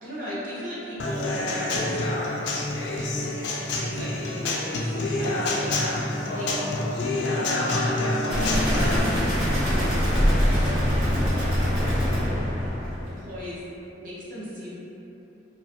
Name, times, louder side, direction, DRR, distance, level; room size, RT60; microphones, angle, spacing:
voice 1, 0.0-2.1 2.9-3.3 3.8-5.7 6.3-6.5 7.5-7.9 8.2-10.8 11.4-11.7 12.1-12.4 13.1-13.7 14.0-14.7, equal, 45° right, -8 dB, 0.5 m, -37 dB
Human voice / Acoustic guitar / Drum, 1.0-9.0, left 2 dB, 65° left, 0.3 m, -27 dB
sound 1, 8.3-13.2, equal, 60° right, 1.0 m, -23 dB
2.3 x 2.1 x 2.7 m, 2.9 s
head